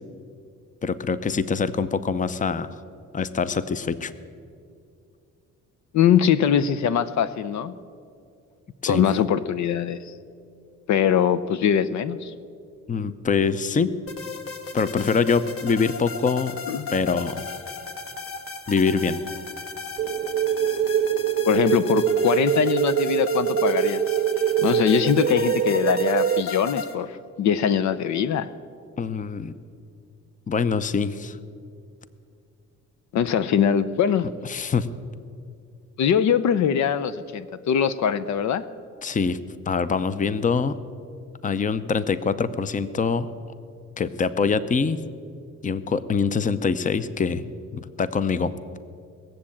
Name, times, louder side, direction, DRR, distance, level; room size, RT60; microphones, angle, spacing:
voice 1, 0.8-2.7 3.1-4.1 8.8-9.1 12.9-13.9 14.7-16.6 16.9-17.4 18.7-19.2 29.0-29.5 30.5-31.4 34.4-34.9 39.0-39.4 39.7-40.8 41.4-43.3 44.0-45.0 45.6-48.5, left 5 dB, 25° left, 14 dB, 0.6 m, -24 dB
voice 2, 5.9-7.7 8.9-10.1 10.9-12.3 16.7-16.9 21.4-24.0 24.6-28.5 33.1-34.3 36.0-38.6, left 8 dB, 65° left, 13 dB, 0.6 m, -22 dB
sound 1, 14.1-26.9, left 5 dB, 45° left, 1.3 m, -35 dB
sound 2, 20.0-26.4, right 9 dB, 40° right, 0.4 m, -23 dB
18.5 x 7.5 x 8.6 m, 2.3 s
cardioid pair, 90°, 30 cm